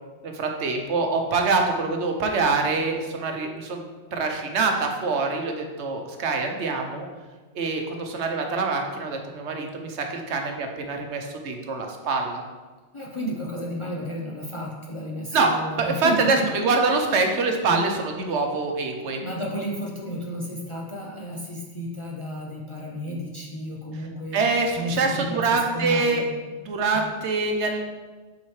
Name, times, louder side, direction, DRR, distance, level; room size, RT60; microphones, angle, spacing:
voice 1, 0.2-3.8 4.1-7.1 7.5-12.4 15.3-15.5 15.8-19.2 24.3-26.2 26.6-27.8, right 3 dB, 70° right, 3 dB, 1.1 m, -25 dB
voice 2, 12.9-16.5 17.1-17.2 17.7-17.9 19.2-24.4 24.8-26.3 26.9-27.1, equal, 35° left, -3 dB, 0.6 m, -32 dB
7.3 x 4.8 x 3.1 m, 1.3 s
omnidirectional pair, 1.2 m